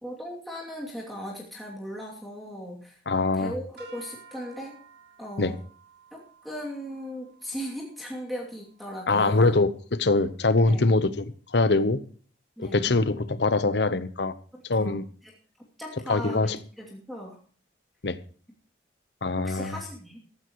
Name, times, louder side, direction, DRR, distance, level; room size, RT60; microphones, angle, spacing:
voice 1, 0.0-3.0 3.3-4.8 5.2-5.6 6.1-9.6 10.6-10.9 12.6-12.9 14.5-15.3 15.8-17.4 19.4-20.2, equal, ahead, 2.7 m, -38 dB
voice 2, 3.1-3.5 5.4-5.5 9.1-12.0 12.6-14.3 14.7-15.0 16.1-16.6 18.0-18.2 19.2-19.8, left 3 dB, 70° left, 0.9 m, -23 dB
sound 1, 3.8-10.1, right 6 dB, 65° right, 5.6 m, -54 dB
16.5 x 14.5 x 3.1 m
head